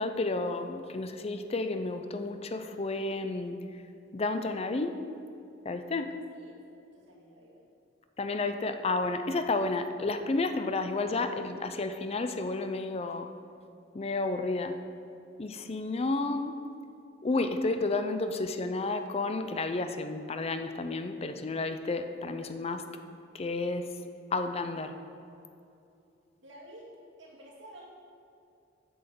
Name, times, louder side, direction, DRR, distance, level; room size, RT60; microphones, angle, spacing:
voice 1, 0.0-3.6 4.1-5.0 5.6-6.2 8.2-13.3 13.9-14.8 15.4-16.6 17.2-22.8 23.3-23.9 24.3-24.9, left 3 dB, 35° left, 8 dB, 0.5 m, -31 dB
voice 2, 6.3-7.6 26.4-26.9 27.2-27.9, right 1 dB, 80° right, -4 dB, 2.4 m, -51 dB
8.7 x 6.3 x 6.8 m, 2.6 s
head